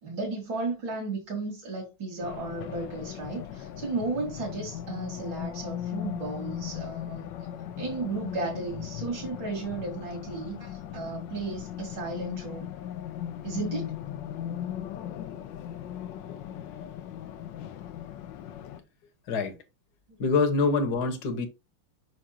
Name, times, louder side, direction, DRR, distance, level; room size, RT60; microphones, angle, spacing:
voice 1, 0.0-7.3 7.8-12.7 13.4-13.9, right 3 dB, 55° right, 3.2 m, -34 dB
Race car auto racing, 2.2-18.8, left 10 dB, 70° left, 1.2 m, -38 dB
voice 2, 20.2-21.5, left 4 dB, 50° left, 1.7 m, -25 dB
6.2 x 6.1 x 2.8 m
omnidirectional pair, 2.4 m